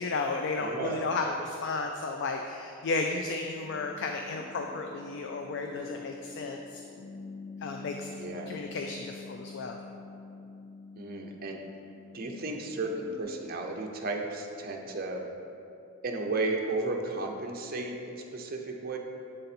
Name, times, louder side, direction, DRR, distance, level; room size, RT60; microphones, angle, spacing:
voice 1, 0.0-6.8 7.6-8.1 8.5-9.8, left 3 dB, 50° left, 3 dB, 0.3 m, -33 dB
voice 2, 0.6-1.0 8.2-8.6 11.0-11.6 12.1-15.2 16.0-19.0, right 2 dB, 40° right, 1 dB, 0.5 m, -34 dB
sound 1, 3.5-13.2, left 3 dB, 80° left, 1.2 m, -46 dB
7.6 x 3.9 x 4.2 m, 2.7 s
head